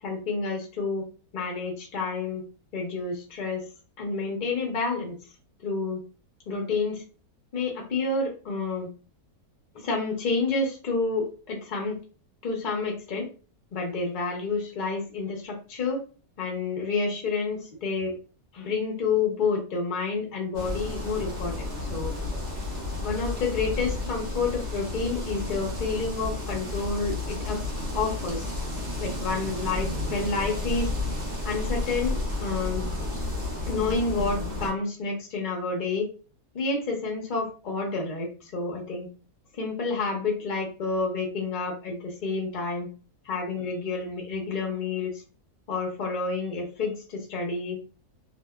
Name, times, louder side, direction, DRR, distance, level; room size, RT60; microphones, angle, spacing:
voice 1, 0.0-1.0 1.3-2.4 2.7-3.6 4.0-5.2 5.6-6.0 6.5-7.0 7.5-8.9 9.8-12.0 12.4-13.3 13.7-16.0 16.4-18.1 18.5-22.1 23.0-27.7 27.9-28.5 29.0-30.9 31.4-32.8 33.7-36.1 36.5-39.1 39.5-42.9 43.2-45.1 45.7-47.8, left 4 dB, 75° left, 0 dB, 0.4 m, -29 dB
sound 1, 20.5-34.7, left 2 dB, 45° right, 0.5 m, -32 dB
2.8 x 2.1 x 2.2 m, 0.36 s
omnidirectional pair, 1.7 m